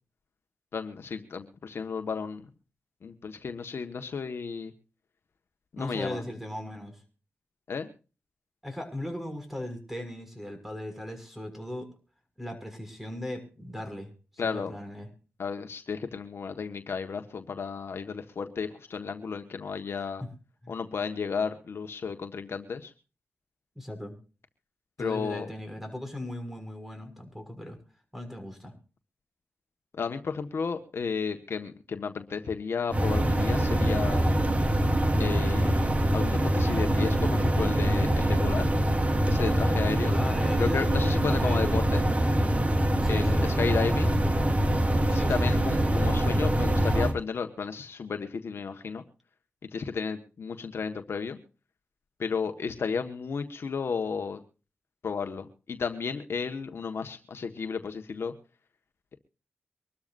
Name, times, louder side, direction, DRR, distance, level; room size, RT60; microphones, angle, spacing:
voice 1, 0.7-2.5 3.0-4.7 5.7-6.2 7.7-7.9 14.4-14.7 15.4-20.2 20.7-22.9 25.0-25.5 29.9-34.3 35.2-38.8 39.2-40.2 40.6-42.0 43.1-44.2 45.1-49.0 49.6-51.4 52.2-54.4 55.0-58.3, left 5 dB, 70° left, 7 dB, 1.4 m, -33 dB
voice 2, 5.8-7.0 8.6-11.9 12.4-14.1 14.4-15.1 20.2-20.3 20.6-20.8 23.7-24.2 25.0-27.8 28.1-28.7 40.0-40.9 41.2-41.8 43.0-44.4 45.1-46.0, left 1 dB, 5° right, 6 dB, 6.2 m, -38 dB
sound 1, 32.9-47.1, right 1 dB, 30° right, 2.3 m, -24 dB
24.5 x 13.0 x 2.6 m, 0.35 s
cardioid pair, 65°, 4 cm